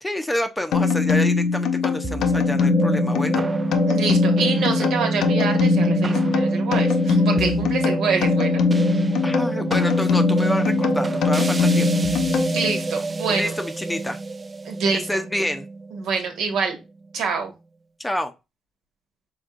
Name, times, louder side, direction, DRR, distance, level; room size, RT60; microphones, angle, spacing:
voice 1, 0.0-3.4 9.2-11.9 13.3-14.2 15.1-15.7 18.0-18.3, left 1 dB, 10° left, 0.6 m, -28 dB
sound 1, 0.7-12.9, left 5 dB, 75° left, 0.7 m, -22 dB
sound 2, 2.0-16.5, right 3 dB, 30° right, 0.3 m, -26 dB
voice 2, 3.9-8.6 12.5-13.5 14.6-15.1 15.9-16.8 17.1-17.5, right 5 dB, 80° right, 1.5 m, -26 dB
5.0 x 3.5 x 2.4 m
cardioid pair, 90°, 0 cm